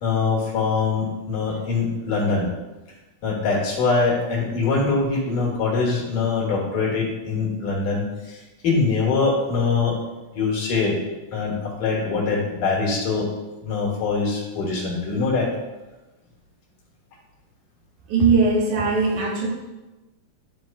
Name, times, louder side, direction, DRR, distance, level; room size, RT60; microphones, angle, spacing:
voice 1, 0.0-2.5 3.2-10.0 10.3-11.0 11.3-13.3 13.6-15.5, left 4 dB, 75° left, -4 dB, 3.2 m, -23 dB
voice 2, 18.1-19.5, right 4 dB, 75° right, -2 dB, 2.5 m, -19 dB
12.5 x 4.7 x 2.2 m, 1.1 s
omnidirectional pair, 3.8 m